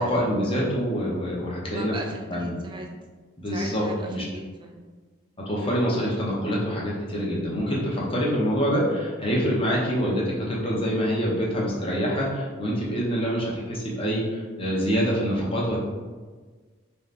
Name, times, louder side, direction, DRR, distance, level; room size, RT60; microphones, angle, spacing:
voice 1, 0.0-1.9 2.3-2.6 3.4-4.2 5.5-15.8, equal, 25° left, -4 dB, 0.8 m, -26 dB
voice 2, 1.7-2.9 3.5-4.8, right 2 dB, 20° right, 2 dB, 0.4 m, -38 dB
3.8 x 2.7 x 3.3 m, 1.4 s
head